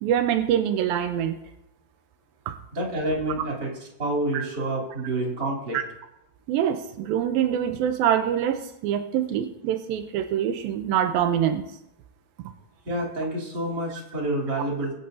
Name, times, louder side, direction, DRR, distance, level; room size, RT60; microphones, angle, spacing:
voice 1, 0.0-1.4 2.5-2.6 4.3-4.5 5.7-5.8 6.5-11.6, right 9 dB, 85° right, 8 dB, 2.4 m, -24 dB
voice 2, 2.7-3.7 4.0-5.8 12.8-15.0, right 1 dB, 30° right, -2 dB, 3.4 m, -28 dB
22.5 x 9.2 x 2.7 m, 0.85 s
omnidirectional pair, 4.3 m